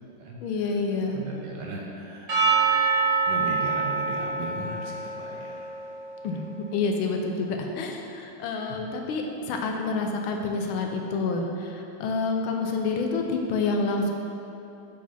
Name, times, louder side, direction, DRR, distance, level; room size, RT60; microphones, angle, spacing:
voice 1, 0.4-1.2 6.2-6.4 6.7-14.1, left 3 dB, 85° left, 2 dB, 1.5 m, -28 dB
voice 2, 1.1-2.4 3.2-5.7 8.7-8.8, right 3 dB, 65° right, -2 dB, 1.3 m, -37 dB
Percussion / Church bell, 2.3-6.6, right 5 dB, 40° right, 1.9 m, -26 dB
6.8 x 5.1 x 4.1 m, 2.8 s
omnidirectional pair, 2.3 m